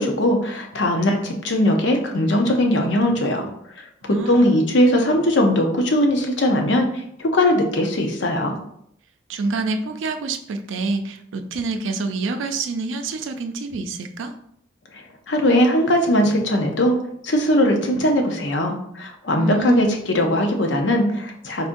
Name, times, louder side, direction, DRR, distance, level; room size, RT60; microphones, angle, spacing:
voice 1, 0.0-3.5 3.8-6.9 7.2-8.5 15.3-17.0 17.2-21.7, left 1 dB, 65° left, 3 dB, 0.7 m, -20 dB
voice 2, 4.0-4.6 9.3-14.3 19.4-20.0, right 3 dB, 75° right, 7 dB, 0.4 m, -27 dB
4.1 x 3.7 x 2.6 m, 0.72 s
head